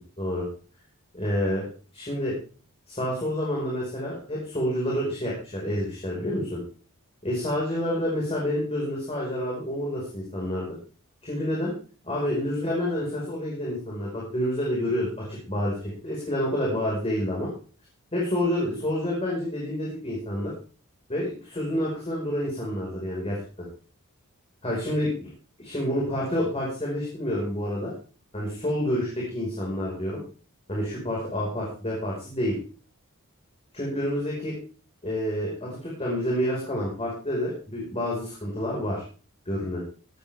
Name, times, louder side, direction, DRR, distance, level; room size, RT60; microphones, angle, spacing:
voice 1, 1.1-1.7 1.9-2.4 2.9-6.6 7.2-10.7 11.2-11.7 12.0-15.1 15.5-17.5 18.1-20.5 21.1-23.4 24.6-25.3 25.6-27.9 28.3-30.2 30.7-32.6 33.7-34.5 35.0-39.0 39.5-39.8, equal, 25° left, -4 dB, 5.2 m, -28 dB
17.5 x 13.5 x 3.6 m, 0.38 s
head